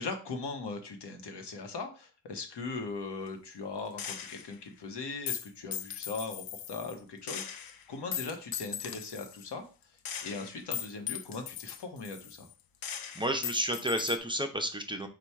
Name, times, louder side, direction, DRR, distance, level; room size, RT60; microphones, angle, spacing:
voice 1, 0.0-9.6 10.2-12.5, left 3 dB, 90° left, 5 dB, 0.9 m, -39 dB
Gunshot gunfire, 4.0-4.6 5.3-7.0 7.3-9.5 10.0-12.5 12.8-14.2, left 9 dB, 60° left, 0.5 m, -39 dB
voice 2, 13.2-15.1, equal, 10° right, 5 dB, 0.4 m, -31 dB
4.2 x 2.3 x 4.6 m, 0.36 s
wide cardioid pair, 120°, 40 cm